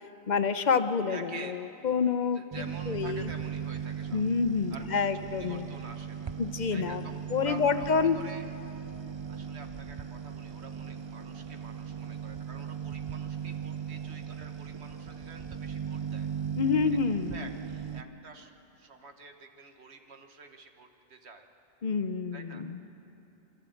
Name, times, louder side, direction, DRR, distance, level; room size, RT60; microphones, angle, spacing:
voice 1, 0.3-2.4 2.9-3.3 4.1-5.7 6.4-7.0 7.3-8.2 16.6-17.5 21.8-22.8, left 5 dB, 45° left, 10 dB, 0.8 m, -28 dB
voice 2, 1.1-1.5 2.3-4.2 4.7-5.1 5.4-6.3 6.7-8.5 9.3-16.3 17.3-21.5 22.3-22.6, right 4 dB, 75° right, 5 dB, 1.5 m, -48 dB
sound 1, 2.5-18.0, right 8 dB, 45° right, 0.3 m, -38 dB
25.5 x 13.0 x 7.8 m, 2.9 s
omnidirectional pair, 1.1 m